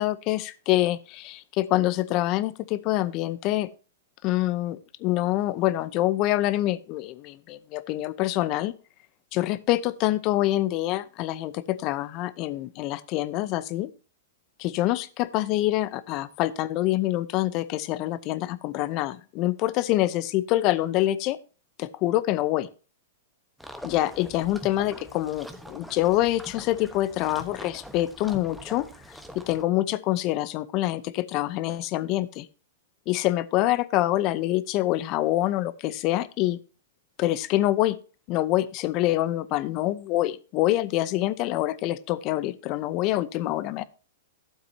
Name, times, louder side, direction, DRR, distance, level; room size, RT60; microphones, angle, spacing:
voice 1, 0.0-3.7 4.2-8.7 9.3-13.9 14.6-21.4 21.8-22.7 23.8-28.9 29.3-32.5 33.1-36.6 37.2-38.0 38.3-43.8, left 15 dB, 35° left, 17 dB, 0.7 m, -26 dB
sound 1, 23.6-29.6, equal, ahead, 1.0 m, -44 dB
12.5 x 7.6 x 2.7 m, 0.34 s
hypercardioid pair, 140°, 0 cm